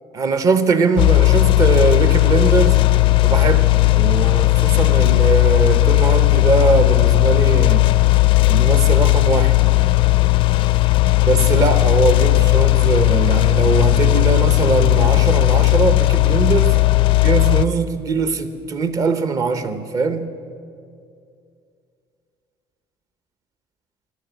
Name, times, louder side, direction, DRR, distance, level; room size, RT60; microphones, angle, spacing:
voice 1, 0.1-2.9 3.2-8.0 8.5-9.6 11.2-16.8 17.2-20.4, right 4 dB, 35° right, 0.9 m, -21 dB
sound 1, 1.0-17.6, left 20 dB, 60° left, 0.4 m, -15 dB
14.0 x 10.5 x 8.1 m
cardioid pair, 150°, 10 cm